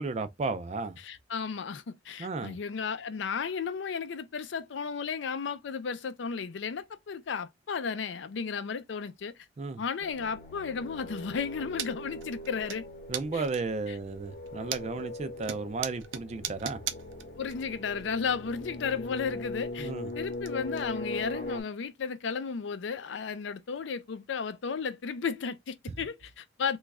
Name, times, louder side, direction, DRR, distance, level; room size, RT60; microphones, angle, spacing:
voice 1, 0.0-1.0 2.2-2.6 9.6-9.8 13.1-16.8 19.8-20.1, right 3 dB, 35° right, 0.3 m, -34 dB
voice 2, 1.0-9.3 9.8-12.8 13.3-13.4 13.9-14.0 17.4-26.8, left 6 dB, 70° left, 0.4 m, -34 dB
sound 1, 10.0-21.6, left 1 dB, 45° left, 0.8 m, -41 dB
sound 2, 11.8-11.9 12.2-12.8 13.1-13.8 14.3-15.1 15.4-17.6 17.8-17.9 19.2-19.3 19.6-20.5 20.7-20.8 21.3-21.4 21.8-21.9 22.5-22.6 23.8-23.9, right 9 dB, 90° right, 0.5 m, -37 dB
3.0 x 2.3 x 3.4 m
head